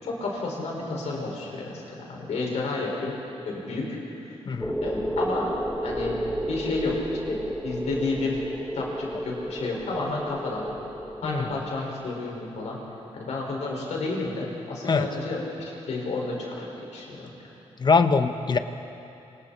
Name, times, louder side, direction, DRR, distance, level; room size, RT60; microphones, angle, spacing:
voice 1, 0.0-3.1 3.4-3.9 4.2-4.4 4.8-5.5 5.8-6.2 6.5-6.9 7.3-8.4 8.7-10.7 11.2-12.8 13.1-16.7 16.9-17.3, left 3 dB, 85° left, -2 dB, 5.8 m, -31 dB
sound 1, 4.6-12.4, equal, ahead, 1.5 m, -32 dB
voice 2, 17.8-18.6, left 4 dB, 40° left, 8 dB, 1.1 m, -22 dB
27.5 x 27.0 x 4.5 m, 2.8 s
wide cardioid pair, 125°, 11 cm